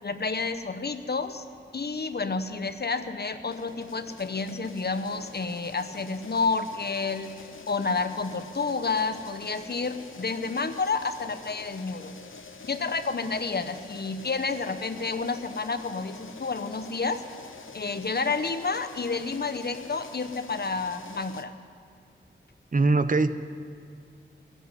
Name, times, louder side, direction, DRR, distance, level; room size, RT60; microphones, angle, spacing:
voice 1, 0.0-1.4 1.7-12.1 12.6-17.2 17.7-21.5, left 4 dB, 55° left, 9 dB, 0.9 m, -30 dB
sound 1, 3.5-21.4, left 5 dB, 80° left, 1.0 m, -46 dB
voice 2, 22.7-23.3, right 3 dB, 40° right, 12 dB, 0.7 m, -21 dB
18.0 x 8.1 x 9.5 m, 2.2 s
wide cardioid pair, 85°, 20 cm